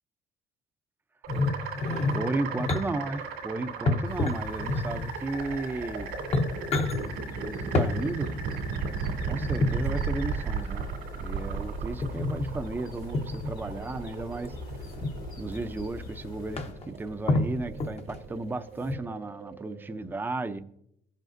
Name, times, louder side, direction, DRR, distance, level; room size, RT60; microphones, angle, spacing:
sound 1, 1.2-20.0, right 5 dB, 90° right, 2.3 m, -36 dB
sound 2, 1.3-2.8 3.9-5.1 5.8-5.9 6.2-7.0 7.7-7.9 9.4-9.9 12.0-12.5 13.1-13.5 14.5-15.1 15.8-15.9 16.2-16.3 16.6-16.9 17.3-18.2 18.8-19.0, left 2 dB, 40° left, 1.0 m, -28 dB
voice 1, 2.1-6.1 7.4-8.3 9.3-10.9 11.2-14.6 15.4-20.6, right 2 dB, 10° right, 0.6 m, -34 dB
sound 3, 4.1-16.7, left 4 dB, 60° left, 2.0 m, -43 dB
16.0 x 7.5 x 2.6 m
cardioid pair, 110°, 17 cm